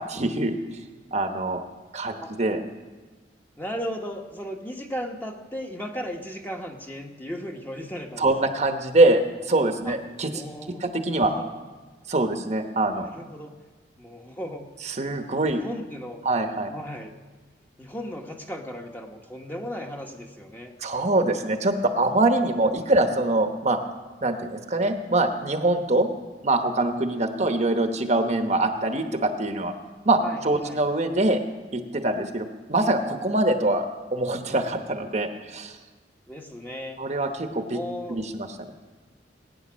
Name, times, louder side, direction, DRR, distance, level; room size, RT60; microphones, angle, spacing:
voice 1, 0.1-0.6 1.1-1.6 1.9-2.6 8.2-10.4 10.8-11.3 12.1-13.1 15.0-15.6 16.2-16.7 20.8-23.8 24.2-26.1 26.4-29.7 30.0-31.4 31.7-35.8 37.0-37.8 38.1-38.7, right 2 dB, 40° right, 6 dB, 1.0 m, -24 dB
voice 2, 3.6-8.3 9.8-10.0 10.3-10.8 11.2-11.5 13.1-13.5 14.0-14.7 15.5-16.2 16.7-17.1 17.8-20.7 30.2-30.8 36.3-37.0 37.7-38.3, equal, 10° left, 2 dB, 1.2 m, -36 dB
19.5 x 9.5 x 6.2 m, 1.3 s
head